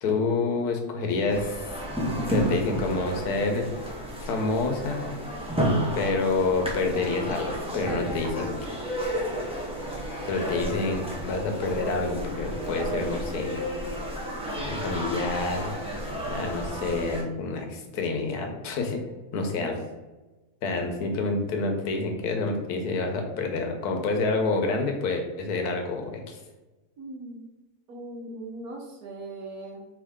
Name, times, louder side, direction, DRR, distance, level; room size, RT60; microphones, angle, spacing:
voice 1, 0.0-1.6 2.3-3.7 4.2-5.0 5.9-8.5 10.2-13.6 14.8-15.7 16.3-19.0 19.3-19.8 20.6-26.4, left 3 dB, 80° left, 3 dB, 1.3 m, -28 dB
sound 1, 1.3-17.2, equal, 10° right, 0.4 m, -31 dB
sound 2, 7.5-15.3, left 3 dB, 50° right, 1.5 m, -51 dB
voice 2, 14.5-14.8 19.3-19.7 27.0-27.5 27.9-29.9, right 1 dB, 75° right, 1 dB, 1.4 m, -40 dB
4.6 x 2.9 x 3.5 m, 1.1 s
omnidirectional pair, 1.7 m